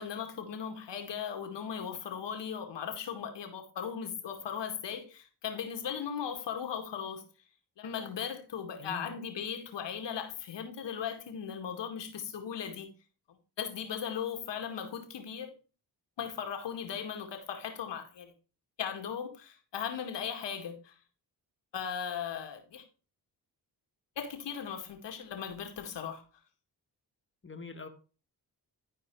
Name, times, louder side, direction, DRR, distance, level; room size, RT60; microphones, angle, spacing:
voice 1, 0.0-7.2 7.8-12.9 13.6-15.6 16.2-18.3 18.8-21.0 21.7-22.8 24.2-26.2, left 8 dB, 75° left, 2.1 m, -38 dB
voice 2, 8.8-9.1 27.4-27.9, left 4 dB, 30° left, 1.8 m, -43 dB
12.0 x 4.6 x 4.7 m
cardioid pair, 55°, 43 cm